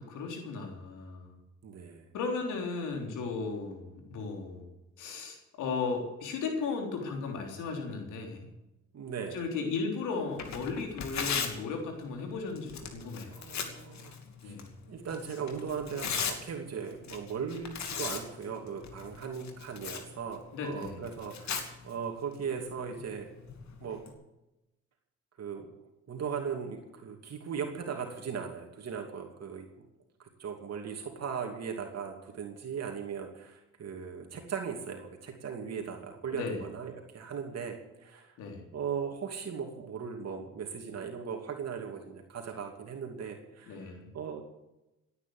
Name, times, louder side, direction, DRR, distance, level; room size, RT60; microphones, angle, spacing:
voice 1, 0.0-1.4 2.1-4.7 5.0-8.5 9.3-13.3 14.4-14.7 20.5-21.0 36.3-36.6 38.4-38.6 43.7-44.1, left 4 dB, 85° left, 2 dB, 3.6 m, -36 dB
voice 2, 1.6-2.0 8.9-9.4 13.3-14.2 14.4-14.5 14.9-23.3 23.8-24.0 25.4-25.7 26.1-29.6 30.2-38.3 38.7-44.4, right 6 dB, 55° right, 2 dB, 2.6 m, -38 dB
Tearing, 10.3-24.1, left 6 dB, 65° left, 2.7 m, -40 dB
17.0 x 9.8 x 7.9 m, 0.94 s
cardioid pair, 90°, 30 cm